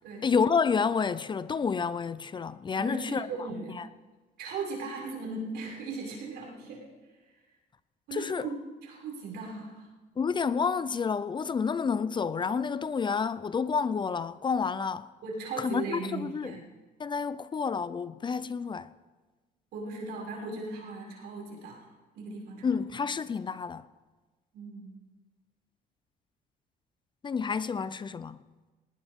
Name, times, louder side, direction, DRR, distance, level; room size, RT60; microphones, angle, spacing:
voice 1, 0.2-3.3 3.7-3.9 8.1-8.5 10.2-15.1 15.6-16.6 17.0-18.9 22.6-23.8 27.2-28.4, left 5 dB, 30° left, 0.6 m, -29 dB
voice 2, 2.8-3.8 4.4-6.8 8.1-8.6 8.8-9.9 15.2-16.6 19.7-22.8 24.5-24.9, right 3 dB, 80° right, 6.2 m, -38 dB
19.5 x 19.5 x 3.7 m
cardioid pair, 110°, 17 cm